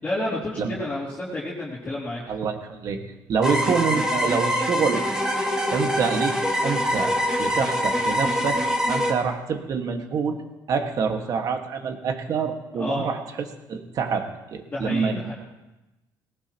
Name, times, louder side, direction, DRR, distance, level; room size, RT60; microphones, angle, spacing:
voice 1, 0.0-2.2 12.8-13.1 14.7-15.3, left 1 dB, 20° left, -7 dB, 3.2 m, -30 dB
voice 2, 2.3-3.0 3.3-5.0 5.7-10.4 10.7-13.2 13.7-15.3, right 5 dB, 50° right, 5 dB, 1.8 m, -26 dB
sound 1, 3.4-9.1, equal, 10° right, 2.5 m, -24 dB
19.5 x 18.0 x 3.0 m, 1.0 s
cardioid pair, 130°, 8 cm